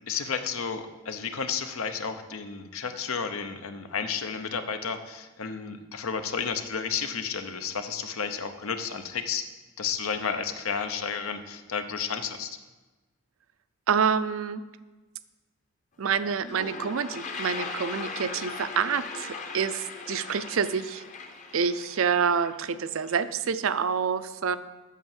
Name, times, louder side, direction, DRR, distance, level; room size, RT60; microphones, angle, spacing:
voice 1, 0.1-9.4 9.8-12.5, left 6 dB, 80° left, 9 dB, 0.8 m, -32 dB
voice 2, 13.9-14.6 16.0-21.0 21.5-24.6, right 6 dB, 70° right, 13 dB, 0.5 m, -27 dB
Toilet flush, 16.0-16.1 16.3-23.1, left 4 dB, 35° left, 0.8 m, -39 dB
8.4 x 6.0 x 7.2 m, 1.2 s
head